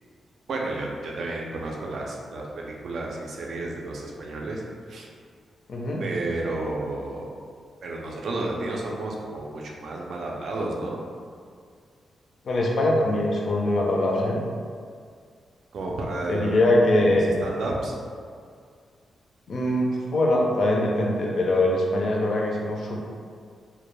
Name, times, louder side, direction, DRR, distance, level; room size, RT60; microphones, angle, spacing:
voice 1, 0.5-4.6 4.9-5.1 6.0-7.3 7.8-11.0 15.7-18.0, right 2 dB, 60° right, -1 dB, 0.4 m, -32 dB
voice 2, 5.7-6.0 12.4-14.4 16.3-17.4 19.5-23.0, left 1 dB, 50° left, -2 dB, 0.4 m, -22 dB
2.2 x 2.1 x 3.0 m, 2.1 s
wide cardioid pair, 135°, 0 cm